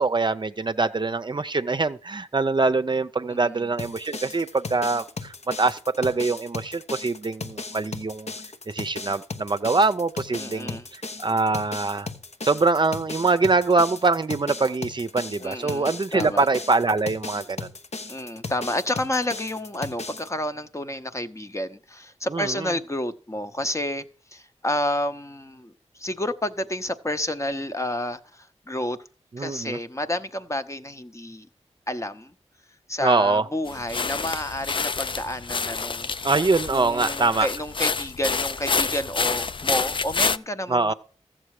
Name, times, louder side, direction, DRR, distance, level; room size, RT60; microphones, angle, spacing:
voice 1, 0.0-8.3 8.7-12.1 12.4-17.7 22.3-22.7 29.3-29.8 33.0-33.4 36.2-37.5 40.7-40.9, right 3 dB, 40° right, 0.6 m, -24 dB
voice 2, 3.3-3.6 10.3-10.9 15.4-16.5 18.1-24.0 24.3-29.0 29.4-31.5 31.9-32.3 32.9-36.3 36.7-40.9, left 1 dB, 25° left, 0.8 m, -30 dB
sound 1, 3.8-20.3, left 3 dB, 70° left, 1.0 m, -36 dB
sound 2, 33.7-40.4, left 4 dB, 45° left, 0.4 m, -28 dB
14.0 x 7.4 x 4.8 m
wide cardioid pair, 60°, 12 cm